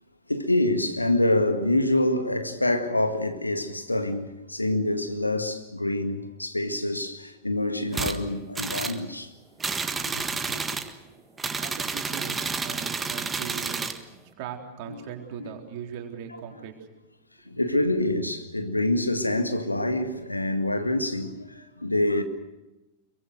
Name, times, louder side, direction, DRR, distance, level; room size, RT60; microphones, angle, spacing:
voice 1, 0.3-9.3 9.9-10.3 14.9-15.0 15.4-15.5 17.5-22.2, left 1 dB, 85° left, 1.9 m, -26 dB
sound 1, 7.9-8.2 8.5-9.0 9.6-10.9 11.4-14.0, right 4 dB, 15° right, 1.6 m, -30 dB
voice 2, 11.5-16.9, right 8 dB, 45° right, 3.9 m, -40 dB
26.5 x 23.0 x 6.6 m
figure-of-eight pair, 90°, 0 cm